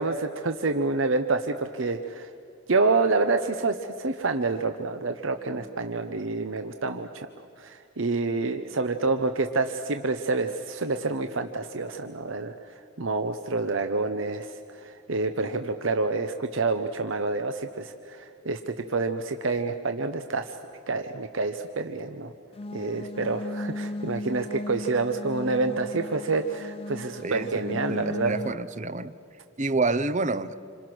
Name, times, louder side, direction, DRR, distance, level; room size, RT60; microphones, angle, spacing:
voice 1, 0.0-2.3 2.7-7.3 7.6-20.6 20.9-22.3 22.7-28.4, right 3 dB, 65° right, 0.9 m, -28 dB
sound 1, 22.5-28.5, left 2 dB, 30° left, 0.5 m, -36 dB
voice 2, 27.2-29.1 29.6-30.6, right 3 dB, 35° right, 0.7 m, -28 dB
28.0 x 26.5 x 6.2 m
head